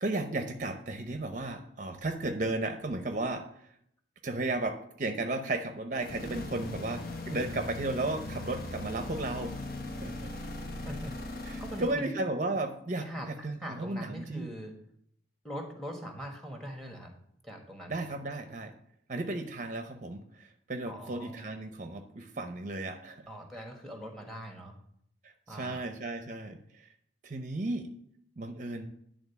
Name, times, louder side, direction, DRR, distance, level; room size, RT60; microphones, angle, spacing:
voice 1, 0.0-3.4 4.2-9.5 10.0-10.3 11.5-14.5 17.9-18.7 19.1-23.2 25.2-26.9 27.2-28.0 28.4-28.9, right 2 dB, 40° right, 7 dB, 0.7 m, -34 dB
sound 1, 5.9-12.0, left 2 dB, 50° left, 1.0 m, -39 dB
voice 2, 11.6-12.2 13.0-14.7 15.4-17.1 17.4-18.0 20.9-21.5 23.3-24.8 25.5-25.9, equal, ahead, 3 dB, 1.4 m, -42 dB
10.5 x 3.8 x 6.9 m, 0.69 s
head